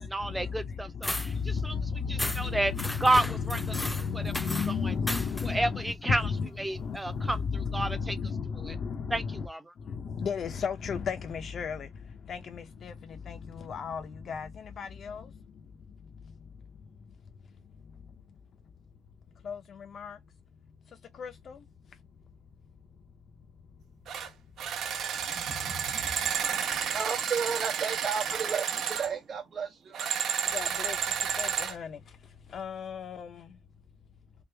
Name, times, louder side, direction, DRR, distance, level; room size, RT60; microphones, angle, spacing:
voice 1, 0.1-1.1 1.5-1.7 2.1-2.7 3.0-3.6 4.1-4.2 5.5-6.2 6.6-7.4 7.7-8.1 8.7-8.8 9.1-9.6, right 2 dB, 10° right, 0.7 m, -29 dB
sound 1, 1.0-1.3 2.2-2.5 2.8-4.7 5.1-5.5, left 1 dB, 5° left, 0.3 m, -35 dB
voice 2, 2.0-5.8 6.1-6.5 6.8-7.2 7.6-9.4 10.2-11.8 12.3-12.9 13.3-13.4 13.6-14.0 14.3-14.5 14.8-15.2 19.5-19.6 19.9-20.2 21.2-21.3 30.5-30.9 31.4-32.0 32.5-33.3, left 6 dB, 60° left, 0.7 m, -33 dB
sound 2, 24.1-24.3 24.6-29.1 29.9-31.8, right 8 dB, 75° right, 1.0 m, -31 dB
voice 3, 25.3-30.0, right 6 dB, 50° right, 0.9 m, -34 dB
3.5 x 2.4 x 3.3 m
cardioid pair, 90°, 0 cm